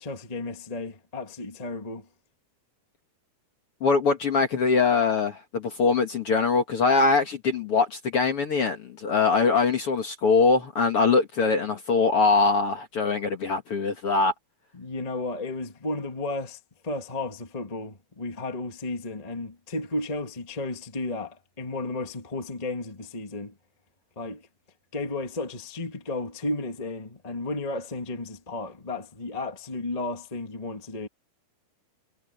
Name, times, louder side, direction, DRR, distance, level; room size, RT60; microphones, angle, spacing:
voice 1, 0.0-2.1 14.7-23.5 24.1-24.4 24.9-31.1, left 2 dB, 25° left, 0.8 m, -33 dB
voice 2, 3.8-14.3, left 4 dB, 50° left, 1.8 m, -22 dB
omnidirectional pair, 4.6 m